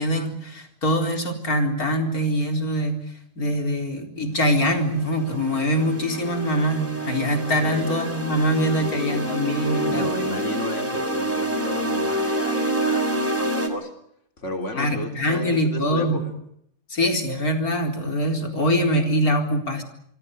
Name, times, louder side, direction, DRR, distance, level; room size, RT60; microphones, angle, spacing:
voice 1, 0.0-3.0 3.4-10.1 14.8-16.2 16.9-19.8, equal, 85° left, 5 dB, 4.7 m, -23 dB
sound 1, 4.6-13.7, right 1 dB, 10° right, 3.6 m, -27 dB
voice 2, 7.6-8.0 8.7-9.3 9.9-13.9 14.4-16.3, left 2 dB, 55° left, 5 dB, 3.9 m, -34 dB
26.5 x 24.5 x 6.7 m, 0.71 s
omnidirectional pair, 1.5 m